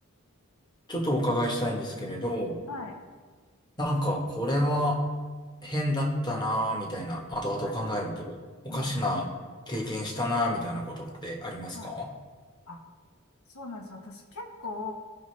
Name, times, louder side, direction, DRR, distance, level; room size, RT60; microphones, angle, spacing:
voice 1, 0.9-2.5 3.8-5.0 5.6-8.4 8.6-9.3 9.7-12.1, equal, 20° left, 0 dB, 1.0 m, -29 dB
voice 2, 13.5-14.9, left 3 dB, 80° left, 3 dB, 0.9 m, -39 dB
14.5 x 5.3 x 3.2 m, 1.5 s
head